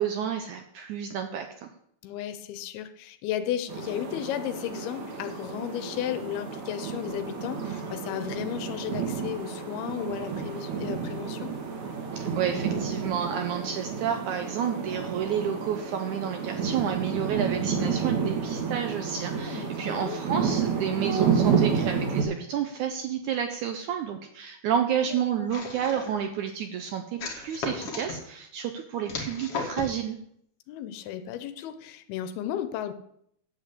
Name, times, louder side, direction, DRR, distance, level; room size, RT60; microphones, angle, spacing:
voice 1, 0.0-1.7 12.1-30.2, right 8 dB, 80° right, 7 dB, 1.8 m, -30 dB
voice 2, 2.0-11.5 19.5-20.2 25.1-25.2 30.7-32.9, left 11 dB, 90° left, 10 dB, 2.7 m, -34 dB
sound 1, 3.7-22.2, right 6 dB, 55° right, 2.8 m, -30 dB
sound 2, 25.5-26.2 27.2-28.2 29.1-30.0, left 4 dB, 45° left, 2.3 m, -35 dB
9.0 x 7.6 x 8.2 m, 0.71 s
omnidirectional pair, 4.4 m